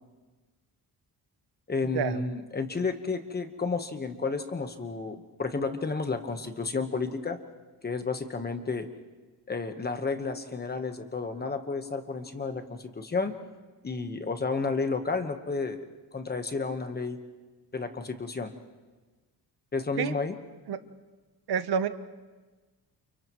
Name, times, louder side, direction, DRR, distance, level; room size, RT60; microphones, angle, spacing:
voice 1, 1.7-7.4 7.8-8.9 9.5-13.4 13.8-15.9 16.1-17.2 17.7-18.5 19.7-20.4, left 4 dB, 25° left, 7 dB, 1.2 m, -31 dB
voice 2, 21.5-21.9, right 7 dB, 75° right, 11 dB, 1.0 m, -28 dB
30.0 x 29.0 x 3.1 m, 1.3 s
wide cardioid pair, 165°, 39 cm